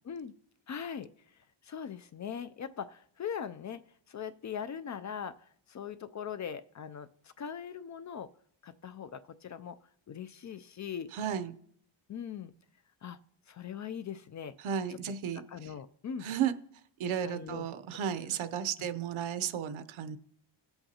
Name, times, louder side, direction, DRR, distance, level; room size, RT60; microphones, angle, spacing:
voice 1, 0.7-3.8 4.1-8.3 8.6-9.8 10.1-11.1 12.1-12.5 13.0-13.2 13.5-14.5 15.5-16.3 17.2-17.7 18.3-18.4 18.8-18.9, left 7 dB, 40° left, 12 dB, 0.4 m, -41 dB
voice 2, 11.1-11.5 14.6-15.7 16.2-16.5 17.0-20.2, right 8 dB, 75° right, 10 dB, 0.9 m, -34 dB
17.5 x 7.9 x 2.8 m, 0.66 s
cardioid pair, 125°, 48 cm